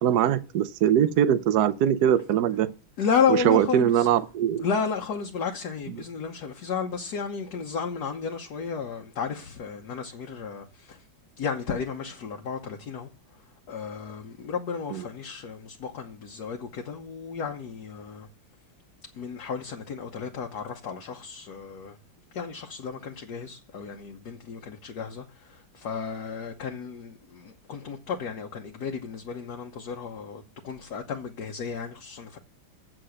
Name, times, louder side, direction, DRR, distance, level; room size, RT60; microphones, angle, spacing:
voice 1, 0.0-2.7 3.3-4.6 14.9-15.0, right 10 dB, 65° right, 1.0 m, -22 dB
voice 2, 3.0-4.1 4.6-11.0 11.4-13.1 13.7-18.3 19.2-22.0 22.3-32.4, left 6 dB, 60° left, 1.4 m, -32 dB
7.7 x 7.7 x 6.4 m
omnidirectional pair, 2.2 m